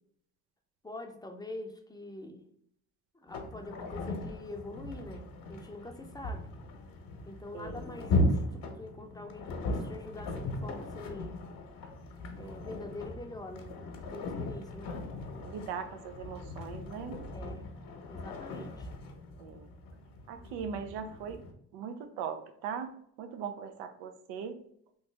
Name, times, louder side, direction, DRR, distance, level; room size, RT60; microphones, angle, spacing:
voice 1, 0.8-2.5 3.1-6.5 7.3-11.4 12.3-15.1 17.3-17.7 18.0-18.9, left 2 dB, 10° left, 4 dB, 0.5 m, -45 dB
sound 1, 3.3-21.5, left 2 dB, 65° left, 0.9 m, -37 dB
voice 2, 15.5-17.2 19.4-19.7 20.3-21.4 21.7-24.6, right 7 dB, 90° right, 8 dB, 0.6 m, -40 dB
3.2 x 2.7 x 3.3 m, 0.68 s
supercardioid pair, 85°, 38 cm